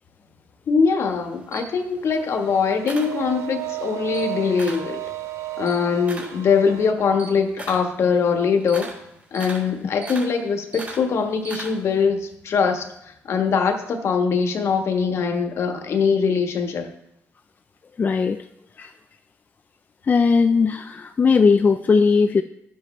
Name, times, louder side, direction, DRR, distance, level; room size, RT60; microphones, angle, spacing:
voice 1, 0.7-5.0 5.6-9.0 9.3-16.9, left 5 dB, 60° left, 5 dB, 1.3 m, -22 dB
Camera, 1.1-3.7 4.0-4.9 5.3-12.0, right 3 dB, 30° right, 3.1 m, -39 dB
sound 1, 2.2-6.9, right 15 dB, 70° right, 0.6 m, -34 dB
voice 2, 18.0-18.5 18.8-18.9 20.0-22.4, left 5 dB, 35° left, 7 dB, 0.4 m, -18 dB
11.5 x 7.7 x 3.2 m, 0.78 s
cardioid pair, 90°, 5 cm